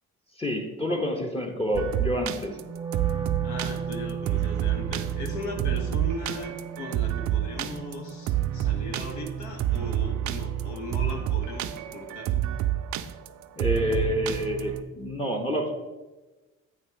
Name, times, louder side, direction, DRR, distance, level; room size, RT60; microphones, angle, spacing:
voice 1, 0.4-2.6 13.6-15.7, left 1 dB, 20° left, 2 dB, 0.9 m, -28 dB
sound 1, 1.7-14.8, right 12 dB, 65° right, 0.5 m, -29 dB
Wind instrument woodwind instrument, 2.6-8.8, right 6 dB, 15° right, 0.5 m, -37 dB
voice 2, 3.4-12.4, left 2 dB, 65° left, 3 dB, 1.2 m, -38 dB
8.7 x 3.0 x 6.2 m, 1.2 s
cardioid pair, 85°, 31 cm